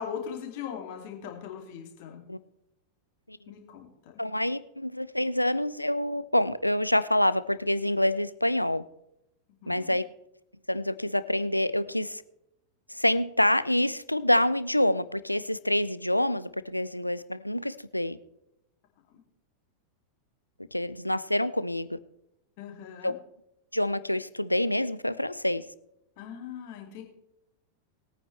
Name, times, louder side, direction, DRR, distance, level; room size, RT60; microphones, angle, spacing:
voice 1, 0.0-2.2 3.5-3.9 4.1-4.2 9.6-10.0 19.1-19.2 22.6-23.1 26.2-27.0, left 7 dB, 50° left, 1 dB, 2.8 m, -39 dB
voice 2, 4.2-8.8 9.7-10.0 10.7-12.2 12.9-18.2 20.7-22.0 23.0-23.1 23.7-25.6, left 1 dB, 90° left, 16 dB, 0.5 m, -27 dB
21.0 x 9.3 x 3.4 m, 0.85 s
figure-of-eight pair, 90°, 0 cm